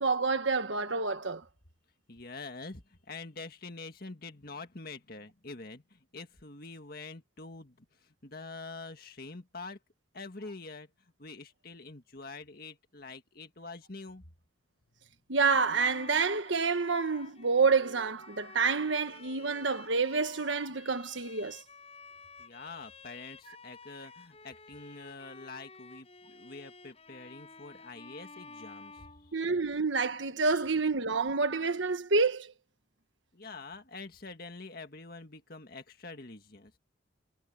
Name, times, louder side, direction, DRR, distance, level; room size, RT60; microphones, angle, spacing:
voice 1, 0.0-1.4 15.3-21.6 29.3-32.5, right 4 dB, 75° right, 1.4 m, -28 dB
voice 2, 2.1-9.8 10.1-10.9 11.2-14.2 22.4-29.5 30.5-30.6 33.3-36.7, left 3 dB, 50° left, 2.0 m, -46 dB
Bowed string instrument, 15.5-29.8, left 4 dB, 30° left, 7.0 m, -52 dB
head